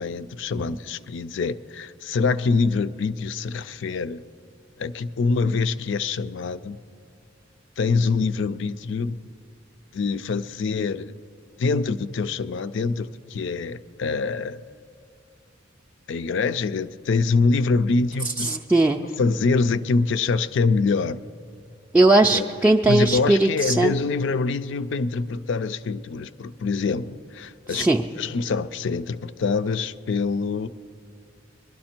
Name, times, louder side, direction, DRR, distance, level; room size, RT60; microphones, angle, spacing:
voice 1, 0.0-4.3 4.8-6.8 7.8-9.3 9.9-11.1 11.6-14.6 16.1-18.5 19.2-21.2 22.3-22.5 22.9-27.9 28.2-30.7, left 4 dB, 65° left, 0.4 m, -25 dB
voice 2, 18.4-19.0 21.9-23.9 27.7-28.0, right 2 dB, 10° right, 0.3 m, -19 dB
21.5 x 12.0 x 4.4 m
head